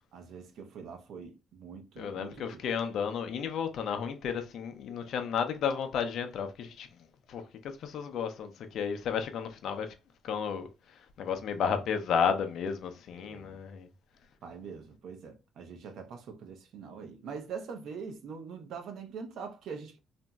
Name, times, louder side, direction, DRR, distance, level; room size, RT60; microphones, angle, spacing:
voice 1, 0.1-2.6 11.7-11.8 13.1-13.6 14.4-20.0, right 5 dB, 75° right, 0.6 m, -43 dB
voice 2, 2.0-7.0 7.3-9.9 10.2-13.9, left 7 dB, 75° left, 0.5 m, -33 dB
2.9 x 2.5 x 2.2 m
cardioid pair, 90°, 0 cm